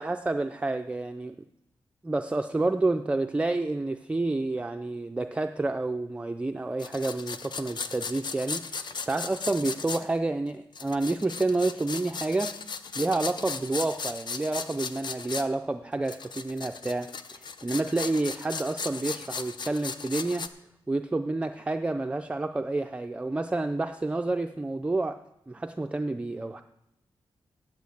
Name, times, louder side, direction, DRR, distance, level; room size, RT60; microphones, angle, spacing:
voice 1, 0.0-1.4 2.0-12.5 12.9-20.5 20.9-25.2 25.5-26.6, right 2 dB, 10° right, 6 dB, 0.3 m, -29 dB
Carrot on grater, 6.8-10.0 10.7-15.5 16.1-20.5, left 5 dB, 50° left, 0.6 m, -37 dB
8.5 x 8.4 x 8.3 m, 0.84 s
wide cardioid pair, 175°, 9 cm